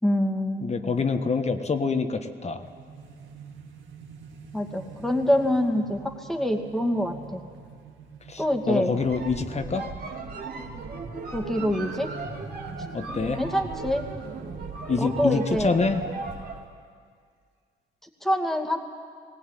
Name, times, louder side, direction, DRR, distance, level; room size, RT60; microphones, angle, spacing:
voice 1, 0.0-1.0 4.5-7.4 8.4-9.0 11.3-12.1 13.4-14.1 15.0-15.8 18.2-18.8, equal, ahead, 2 dB, 2.3 m, -25 dB
voice 2, 0.6-2.6 8.3-9.9 12.9-13.4 14.9-16.0, left 4 dB, 35° left, 7 dB, 1.5 m, -26 dB
sound 1, 2.6-16.8, right 6 dB, 75° right, 2.1 m, -45 dB
sound 2, 8.9-16.7, right 3 dB, 55° right, 2.9 m, -37 dB
19.0 x 18.0 x 9.2 m, 2.1 s
cardioid pair, 90°, 20 cm